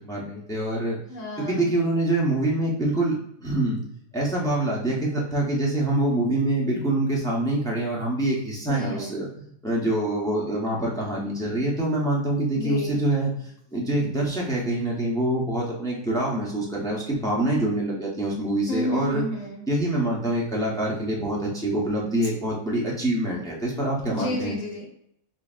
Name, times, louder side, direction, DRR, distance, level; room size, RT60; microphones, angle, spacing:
voice 1, 0.0-1.0 1.4-3.8 4.1-19.2 19.7-24.6, right 1 dB, 5° left, -3 dB, 0.5 m, -25 dB
voice 2, 1.1-1.7 8.7-9.2 12.5-13.0 18.7-19.6 24.1-24.9, left 1 dB, 75° left, -2 dB, 1.5 m, -31 dB
5.6 x 2.0 x 2.4 m, 0.74 s
omnidirectional pair, 1.4 m